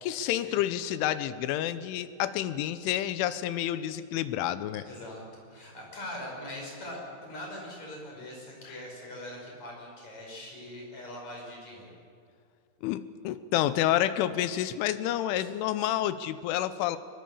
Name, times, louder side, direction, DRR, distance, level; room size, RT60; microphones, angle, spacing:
voice 1, 0.0-4.8 8.7-8.8 12.8-17.0, left 12 dB, 85° left, 13 dB, 3.3 m, -29 dB
voice 2, 4.8-5.2 5.5-11.9 15.4-15.5, left 1 dB, 35° left, -1 dB, 6.3 m, -42 dB
24.0 x 21.5 x 7.1 m, 2.3 s
omnidirectional pair, 5.5 m